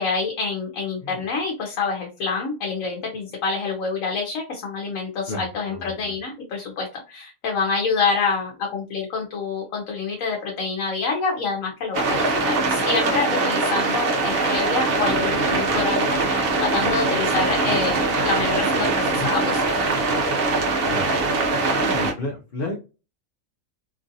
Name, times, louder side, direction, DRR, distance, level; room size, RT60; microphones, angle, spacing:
voice 1, 0.0-19.9, left 4 dB, 85° left, 0 dB, 1.1 m, -27 dB
voice 2, 5.3-6.1 20.8-21.1 21.7-22.8, left 2 dB, 55° left, 0 dB, 0.8 m, -32 dB
sound 1, 11.9-22.1, right 3 dB, 55° right, 0.8 m, -22 dB
3.0 x 2.5 x 2.6 m, 0.31 s
omnidirectional pair, 1.4 m